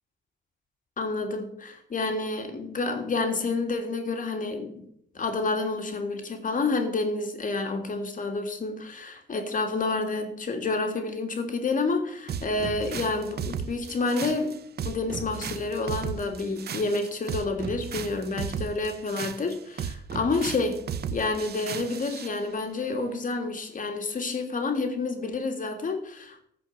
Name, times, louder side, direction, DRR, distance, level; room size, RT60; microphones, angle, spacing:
voice 1, 1.0-4.9 5.1-14.6 14.8-20.8 21.1-26.4, left 3 dB, 40° left, 4 dB, 3.1 m, -29 dB
sound 1, 12.3-22.4, right 7 dB, 55° right, 1.0 m, -35 dB
14.5 x 5.9 x 7.9 m, 0.68 s
cardioid pair, 90°, 20 cm